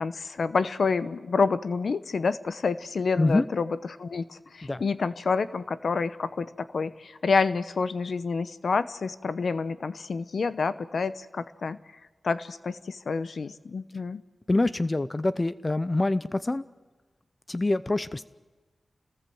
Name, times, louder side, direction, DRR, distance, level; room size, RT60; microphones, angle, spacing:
voice 1, 0.0-11.8 12.2-14.2, left 4 dB, 75° left, 14 dB, 0.8 m, -28 dB
voice 2, 14.5-16.6 17.5-18.2, left 2 dB, 30° left, 14 dB, 0.7 m, -25 dB
28.0 x 19.0 x 7.8 m, 1.3 s
cardioid pair, 65°, 0 cm